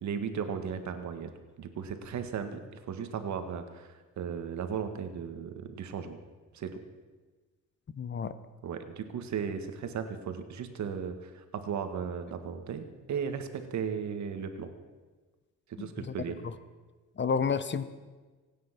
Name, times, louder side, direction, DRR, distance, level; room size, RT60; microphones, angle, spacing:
voice 1, 0.0-1.3 1.6-3.9 4.2-6.2 6.5-6.8 8.6-14.7 15.7-16.4, right 7 dB, 65° right, 8 dB, 1.8 m, -36 dB
voice 2, 8.0-8.3 15.8-15.9 17.2-17.8, left 6 dB, 40° left, 13 dB, 1.0 m, -29 dB
25.0 x 9.4 x 6.0 m, 1.3 s
cardioid pair, 90°, 30 cm